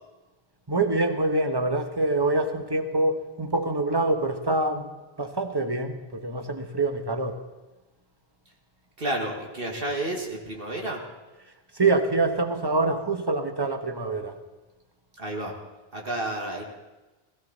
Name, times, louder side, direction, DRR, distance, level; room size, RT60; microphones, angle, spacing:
voice 1, 0.7-4.9 5.2-7.4 11.7-14.4, right 2 dB, 25° right, 6 dB, 1.1 m, -25 dB
voice 2, 9.0-11.0 15.2-15.5 15.9-16.6, right 1 dB, 60° right, 0 dB, 1.9 m, -31 dB
16.5 x 15.5 x 4.0 m, 1.1 s
omnidirectional pair, 1.1 m